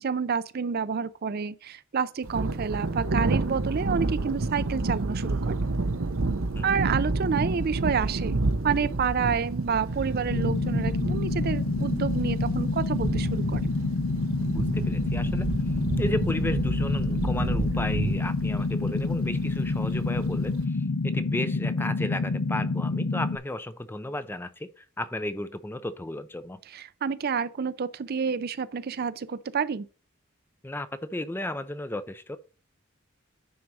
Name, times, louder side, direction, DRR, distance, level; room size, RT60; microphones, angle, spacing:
voice 1, 0.0-5.6 6.6-13.7 26.7-29.9, right 6 dB, 50° right, 0.5 m, -29 dB
Thunder, 2.2-20.6, right 2 dB, 90° right, 0.8 m, -30 dB
sound 1, 10.3-23.4, left 3 dB, 85° left, 0.7 m, -28 dB
voice 2, 14.4-15.5 16.0-26.6 30.6-32.4, left 1 dB, 10° left, 0.5 m, -34 dB
9.5 x 3.9 x 4.7 m
head